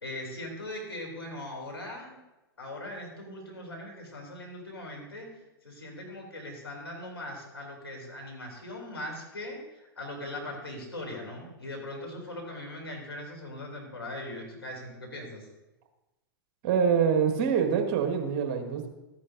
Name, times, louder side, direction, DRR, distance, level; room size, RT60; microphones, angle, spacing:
voice 1, 0.0-2.2 2.6-5.3 5.6-15.5, left 1 dB, 90° left, 0 dB, 2.9 m, -40 dB
voice 2, 16.6-18.9, right 7 dB, 45° right, 5 dB, 1.3 m, -25 dB
13.0 x 9.6 x 2.6 m, 1.0 s
figure-of-eight pair, 105°, 12 cm